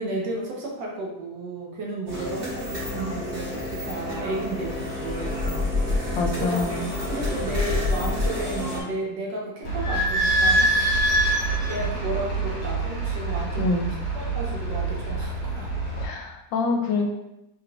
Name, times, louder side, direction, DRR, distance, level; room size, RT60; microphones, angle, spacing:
voice 1, 0.0-6.0 6.3-6.7 7.1-11.0 11.7-15.7, right 2 dB, 65° right, -1 dB, 1.3 m, -33 dB
sound 1, 2.1-8.8, left 2 dB, 45° right, 1.8 m, -28 dB
voice 2, 6.1-7.0 13.6-13.9 16.0-17.1, left 3 dB, 75° left, 1 dB, 1.3 m, -26 dB
Idling / Squeak, 9.6-16.0, right 2 dB, 55° left, 1.4 m, -25 dB
3.7 x 3.6 x 2.3 m, 0.87 s
omnidirectional pair, 2.2 m